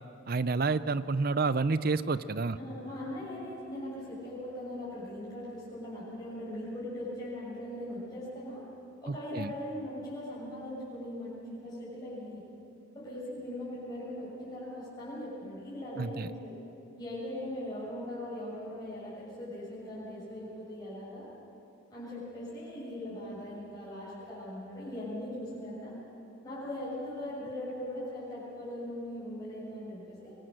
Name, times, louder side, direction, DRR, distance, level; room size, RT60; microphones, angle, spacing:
voice 1, 0.3-2.6 9.1-9.5 16.0-16.3, right 4 dB, 45° right, 14 dB, 0.6 m, -29 dB
voice 2, 2.5-8.6 9.0-12.4 13.0-16.5 17.0-21.3 21.9-25.9 26.4-30.4, left 1 dB, 20° left, -8 dB, 6.8 m, -40 dB
25.5 x 23.0 x 6.5 m, 2.7 s
head